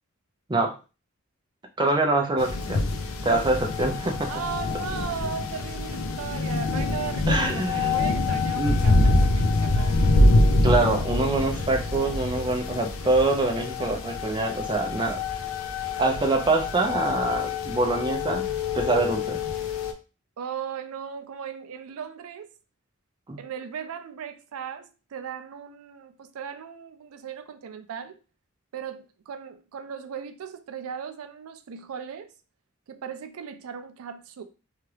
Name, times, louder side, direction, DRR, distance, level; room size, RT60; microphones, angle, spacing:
voice 1, 1.8-2.9 3.2-4.3 7.3-8.0 8.6-8.8 10.6-15.2 16.0-18.4 18.7-19.4 23.3-23.4, right 2 dB, 20° right, 0.4 m, -25 dB
sound 1, 2.4-19.9, left 2 dB, 70° left, 0.4 m, -25 dB
voice 2, 4.3-10.0 20.4-22.5 23.4-28.2 28.7-32.3 32.9-34.4, right 7 dB, 90° right, 0.4 m, -37 dB
2.8 x 2.3 x 3.2 m
head